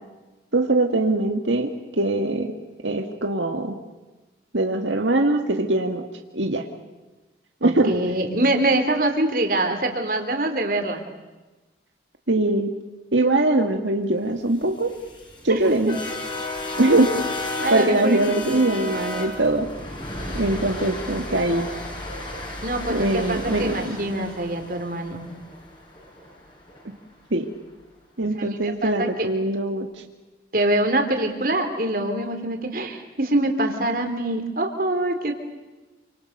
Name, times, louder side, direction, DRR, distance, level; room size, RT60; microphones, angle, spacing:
voice 1, 0.5-2.5 2.8-3.8 4.5-6.0 6.3-6.7 7.6-7.9 12.3-12.7 13.1-15.0 15.4-16.0 16.8-17.1 17.7-19.7 20.3-21.7 22.9-24.0 27.3-27.5 28.2-30.0, right 2 dB, 85° right, 4 dB, 1.9 m, -22 dB
voice 2, 7.6-11.0 15.5-15.6 17.6-18.6 22.6-25.3 28.4-29.3 30.5-35.4, right 1 dB, 50° right, 5 dB, 3.5 m, -24 dB
sound 1, 14.6-26.8, left 2 dB, 25° left, 5.2 m, -33 dB
28.5 x 26.0 x 6.7 m, 1.2 s
head